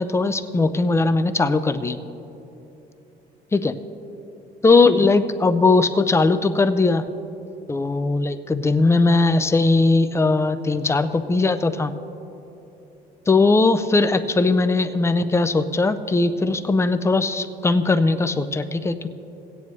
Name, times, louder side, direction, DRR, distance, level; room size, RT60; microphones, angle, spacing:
voice 1, 0.0-2.0 3.5-3.7 4.6-7.1 7.7-11.9 13.3-19.1, left 3 dB, 15° left, 10 dB, 0.4 m, -19 dB
16.5 x 9.2 x 3.1 m, 3.0 s
cardioid pair, 110°, 17 cm